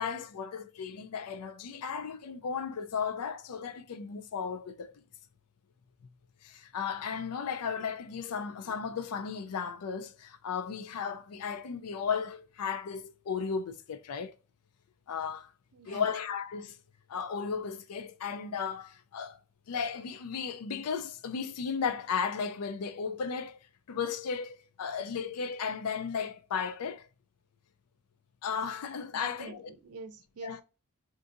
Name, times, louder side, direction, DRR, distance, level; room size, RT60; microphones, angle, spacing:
voice 1, 0.0-4.9 6.4-14.3 15.1-15.5 15.9-16.8 17.1-19.4 19.7-23.6 23.9-27.1 28.4-29.7 30.4-30.6, left 6 dB, 85° left, 0.4 m, -35 dB
voice 2, 15.7-16.1 29.1-30.6, right 4 dB, 85° right, 0.5 m, -46 dB
2.5 x 2.5 x 2.5 m
head